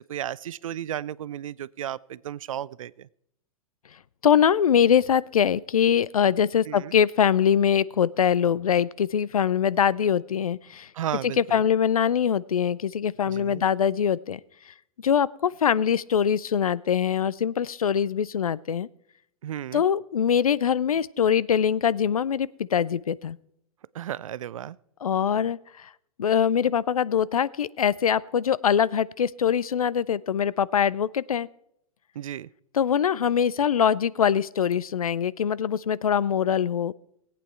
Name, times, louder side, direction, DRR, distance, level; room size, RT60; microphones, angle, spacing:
voice 1, 0.0-3.1 6.7-7.0 10.9-11.6 13.3-13.7 19.4-19.8 23.9-24.8 32.1-32.5, right 11 dB, 65° right, 22 dB, 0.4 m, -34 dB
voice 2, 4.2-10.9 11.2-14.4 15.0-18.9 19.7-23.4 25.0-25.9 26.2-31.5 32.7-36.9, left 8 dB, 80° left, 21 dB, 0.4 m, -23 dB
18.0 x 8.6 x 4.4 m, 0.75 s
figure-of-eight pair, 105°, 18 cm